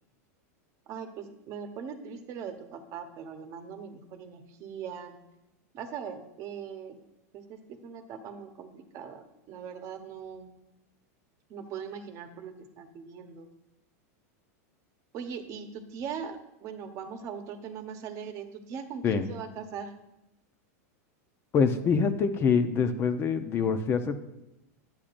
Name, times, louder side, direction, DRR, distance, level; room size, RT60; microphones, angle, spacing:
voice 1, 0.9-5.2 5.7-7.0 7.3-10.5 11.5-13.5 15.1-19.9, right 7 dB, 40° right, 6 dB, 1.1 m, -40 dB
voice 2, 21.5-24.2, left 6 dB, 30° left, 9 dB, 0.7 m, -25 dB
11.5 x 8.6 x 2.6 m, 0.90 s
supercardioid pair, 140°, 9 cm